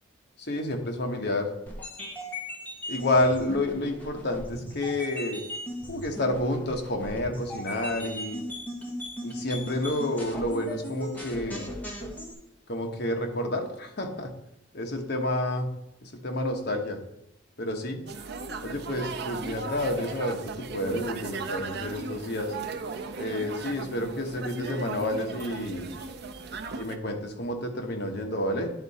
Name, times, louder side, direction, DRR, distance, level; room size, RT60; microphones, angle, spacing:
voice 1, 0.4-1.5 2.9-5.4 5.9-8.5 9.2-11.7 12.7-14.3 14.7-15.7 16.0-17.0 17.6-18.0 18.6-22.5 23.2-25.9 26.7-28.7, left 1 dB, 55° left, 2 dB, 1.2 m, -29 dB
sound 1, 1.7-12.3, equal, 10° left, 1.3 m, -38 dB
sound 2, 18.1-27.0, right 4 dB, 55° right, 0.6 m, -37 dB
10.5 x 3.8 x 4.1 m, 0.86 s
head